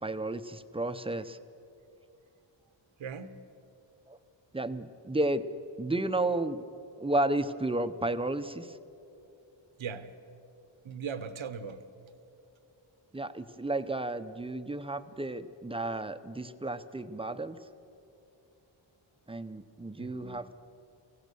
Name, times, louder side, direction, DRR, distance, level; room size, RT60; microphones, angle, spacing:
voice 1, 0.0-1.4 4.1-4.2 4.5-5.4 5.8-6.6 7.0-8.8 13.1-17.6 19.3-20.5, right 2 dB, 10° right, 11 dB, 0.5 m, -32 dB
voice 2, 3.0-3.3 9.8-10.1 10.8-11.8 20.0-20.4, right 6 dB, 90° right, 11 dB, 1.2 m, -39 dB
24.5 x 16.0 x 6.8 m, 2.7 s
wide cardioid pair, 150°, 46 cm